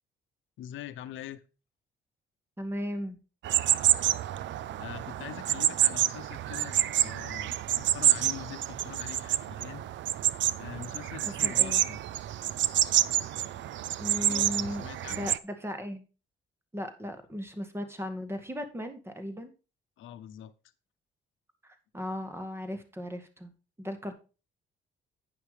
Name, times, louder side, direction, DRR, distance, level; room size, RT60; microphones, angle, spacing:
voice 1, 0.6-1.4 4.7-9.8 10.5-12.0 14.2-15.3 20.0-20.5, left 11 dB, 80° left, 10 dB, 0.8 m, -44 dB
voice 2, 2.6-3.2 11.4-11.8 14.0-14.8 15.1-16.0 16.7-19.5 21.6-23.5 23.8-24.1, equal, 10° right, 7 dB, 1.9 m, -36 dB
sound 1, 3.4-15.4, right 12 dB, 70° right, 0.5 m, -28 dB
9.5 x 5.7 x 4.9 m, 0.32 s
cardioid pair, 90°, 20 cm